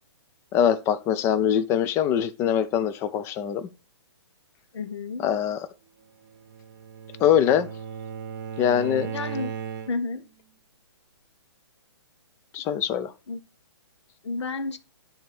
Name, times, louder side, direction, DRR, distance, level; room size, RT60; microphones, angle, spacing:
voice 1, 0.5-3.7 5.2-5.7 7.2-7.7 8.6-9.1 12.5-13.1, left 9 dB, 15° left, 0.4 m, -23 dB
voice 2, 4.7-5.3 9.1-9.5 9.9-10.2 13.3-13.4 14.2-14.8, left 3 dB, 80° left, 0.9 m, -31 dB
Bowed string instrument, 6.3-10.3, right 7 dB, 45° right, 0.8 m, -36 dB
10.0 x 3.5 x 3.5 m
hypercardioid pair, 145°, 14 cm